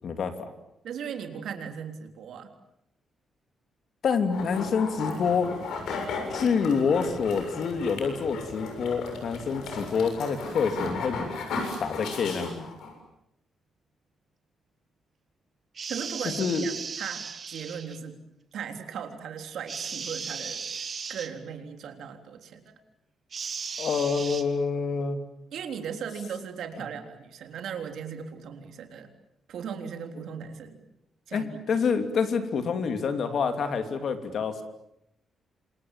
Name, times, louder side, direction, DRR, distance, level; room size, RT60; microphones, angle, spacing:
voice 1, 0.0-0.5 4.0-5.5 6.3-11.2 11.8-12.7 16.4-16.6 23.8-25.2 31.3-34.6, left 5 dB, 50° left, 8 dB, 2.9 m, -27 dB
voice 2, 0.8-2.5 15.9-18.2 18.5-22.7 25.5-29.1 29.5-30.8 31.3-31.8, right 7 dB, 65° right, 6 dB, 3.6 m, -38 dB
sound 1, 4.3-12.9, left 4 dB, 85° left, 7.1 m, -35 dB
sound 2, 15.7-18.0 19.7-21.3 23.3-24.4, right 6 dB, 35° right, 2.0 m, -36 dB
29.0 x 26.5 x 7.5 m, 0.81 s
cardioid pair, 165°, 0 cm